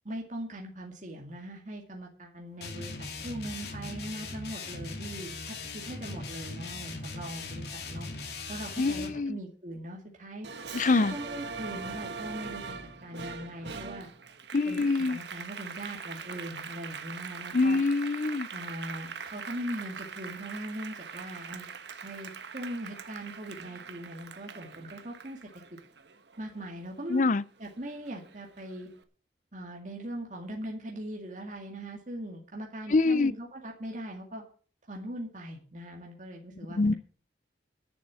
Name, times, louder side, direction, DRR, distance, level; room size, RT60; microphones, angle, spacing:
voice 1, 0.0-8.1 8.5-10.5 11.0-12.7 13.0-14.1 14.7-17.8 18.5-21.7 22.0-25.4 26.4-27.2 27.6-28.9 29.5-34.4 34.9-37.0, right 1 dB, 45° right, 2.2 m, -40 dB
sound 1, 2.6-9.2, left 3 dB, 65° left, 2.4 m, -39 dB
voice 2, 8.8-9.4 10.7-11.1 14.5-15.2 17.5-18.5 27.1-27.4 32.9-33.3 36.7-36.9, left 3 dB, 45° left, 0.5 m, -25 dB
Applause, 10.4-27.2 27.6-28.8, right 5 dB, 70° right, 1.2 m, -42 dB
10.5 x 7.3 x 8.2 m
head